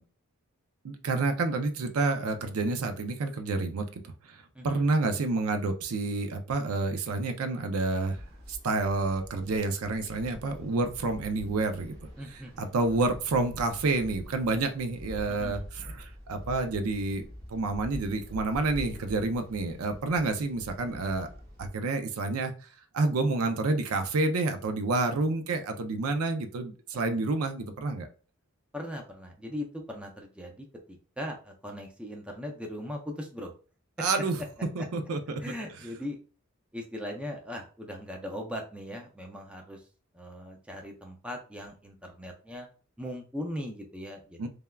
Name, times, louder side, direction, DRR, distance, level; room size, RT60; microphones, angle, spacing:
voice 1, 0.8-3.9 4.2-8.2 8.5-12.0 12.6-21.3 21.6-22.5 22.9-28.1 34.0-34.4 34.8-35.4 44.4-44.5, right 3 dB, 85° right, 7 dB, 0.4 m, -29 dB
voice 2, 4.5-4.9 12.2-13.0 15.3-15.6 26.9-27.0 28.7-33.5 34.0-34.2 34.8-34.9 35.4-36.2 36.7-39.9 40.1-42.7 43.0-44.5, left 1 dB, 5° right, 1 dB, 0.4 m, -39 dB
sound 1, 8.0-21.7, equal, 50° right, 1.3 m, -45 dB
3.3 x 2.2 x 2.2 m, 0.37 s
head